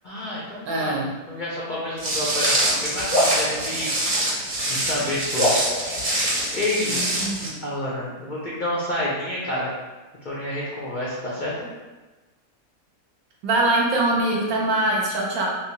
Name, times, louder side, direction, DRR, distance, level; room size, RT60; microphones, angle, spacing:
voice 1, 0.0-0.9 1.3-4.4 4.7-6.2 6.5-7.1 7.6-9.7 10.2-11.7, left 1 dB, 80° left, -6 dB, 0.4 m, -29 dB
voice 2, 0.6-1.1 6.9-7.5 13.4-15.5, right 2 dB, 65° right, -3 dB, 1.2 m, -23 dB
Walk footsteps, 2.0-7.5, right 1 dB, 45° right, 1.2 m, -25 dB
sound 1, 3.1-4.8 5.3-7.0, left 1 dB, 20° right, 0.6 m, -27 dB
3.5 x 2.7 x 2.8 m, 1.2 s
omnidirectional pair, 1.7 m